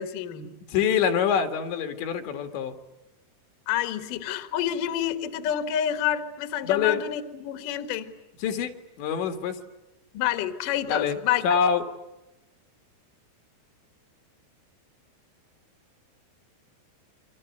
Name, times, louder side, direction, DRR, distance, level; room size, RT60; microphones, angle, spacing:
voice 1, 0.0-0.5 3.7-8.1 10.1-11.6, left 10 dB, 55° left, 8 dB, 2.9 m, -28 dB
voice 2, 0.7-2.8 6.6-7.0 8.4-8.7 9.0-9.6 10.9-11.8, left 7 dB, 75° left, 6 dB, 4.2 m, -25 dB
28.5 x 25.5 x 8.0 m, 1.0 s
omnidirectional pair, 5.2 m